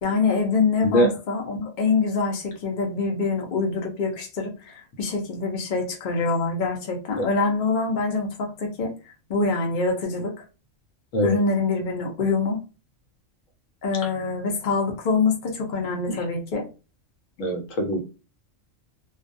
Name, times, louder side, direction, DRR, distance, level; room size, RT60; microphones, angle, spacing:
voice 1, 0.0-8.9 9.3-10.3 11.2-12.6 13.8-16.6, left 4 dB, 45° left, 0.8 m, -25 dB
voice 2, 0.8-1.1 7.2-7.3 11.1-11.4 16.1-16.2 17.4-18.0, equal, 80° left, 1.1 m, -23 dB
2.3 x 2.3 x 2.6 m
omnidirectional pair, 1.3 m